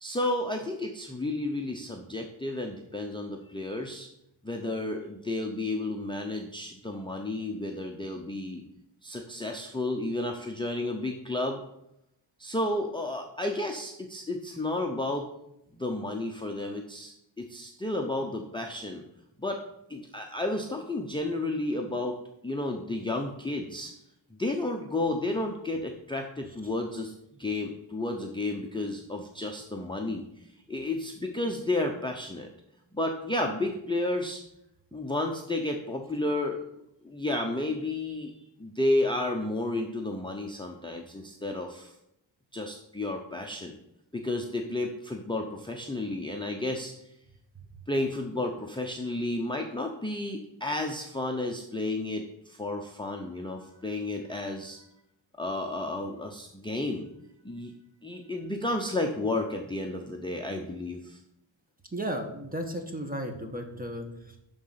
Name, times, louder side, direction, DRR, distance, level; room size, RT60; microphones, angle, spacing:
voice 1, 0.0-4.1 4.4-8.6 9.0-11.6 12.4-15.3 15.7-19.0 19.4-19.6 19.9-22.2 22.4-23.9 24.4-27.1 27.4-32.5 32.9-34.4 34.9-36.6 37.0-38.3 38.6-41.9 42.5-43.8 44.1-46.9 47.9-54.8 55.4-57.1 57.4-57.7 58.0-61.2, left 2 dB, 10° left, 2 dB, 0.7 m, -32 dB
voice 2, 61.9-64.4, equal, 20° right, 3 dB, 1.3 m, -34 dB
11.5 x 3.8 x 5.8 m, 0.81 s
wide cardioid pair, 130°, 46 cm